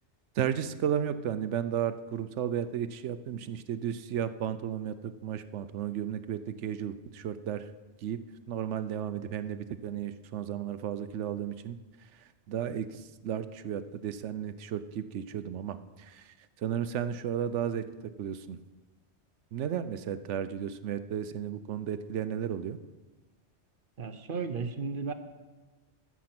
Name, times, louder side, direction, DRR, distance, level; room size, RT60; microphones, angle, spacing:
voice 1, 0.4-7.7 8.0-8.2 8.5-17.9 18.2-18.6 19.5-22.8, right 9 dB, 85° right, 13 dB, 1.0 m, -34 dB
voice 2, 24.0-25.1, right 5 dB, 50° right, 9 dB, 1.0 m, -34 dB
14.0 x 7.2 x 6.0 m, 1.2 s
omnidirectional pair, 1.2 m